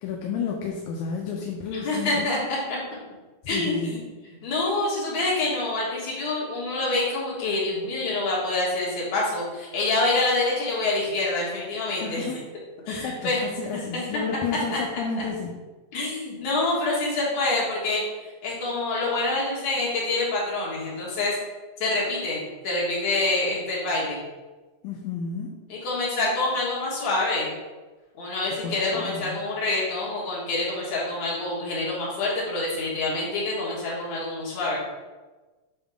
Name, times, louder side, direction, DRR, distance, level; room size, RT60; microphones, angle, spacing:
voice 1, 0.0-2.2 3.5-4.0 12.0-12.4 12.9-13.3 13.6-15.5 24.8-25.6 28.6-29.4, left 5 dB, 80° left, 0 dB, 2.0 m, -31 dB
voice 2, 1.7-2.6 3.5-12.3 12.9-13.8 14.7-14.8 15.1-15.2 15.9-18.0 18.4-21.4 21.8-24.2 25.7-27.5 28.2-34.8, left 2 dB, 60° left, -5 dB, 2.8 m, -26 dB
7.4 x 2.9 x 4.9 m, 1.2 s
omnidirectional pair, 3.6 m